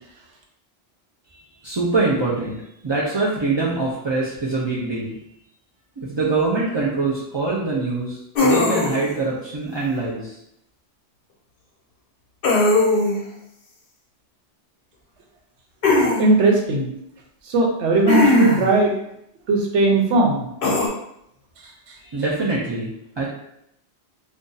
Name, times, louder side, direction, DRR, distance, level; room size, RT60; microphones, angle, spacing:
voice 1, 1.3-5.2 6.0-10.4 22.0-23.3, right 3 dB, 40° right, -6 dB, 0.4 m, -24 dB
sound 1, 8.4-9.1 12.4-13.2 15.8-16.2 18.1-18.7 20.6-20.9, left 2 dB, 60° left, 0.7 m, -18 dB
voice 2, 16.2-16.9 17.5-18.9 19.5-20.5, right 2 dB, 85° right, 0 dB, 1.0 m, -18 dB
2.6 x 2.4 x 3.8 m, 0.78 s
omnidirectional pair, 1.2 m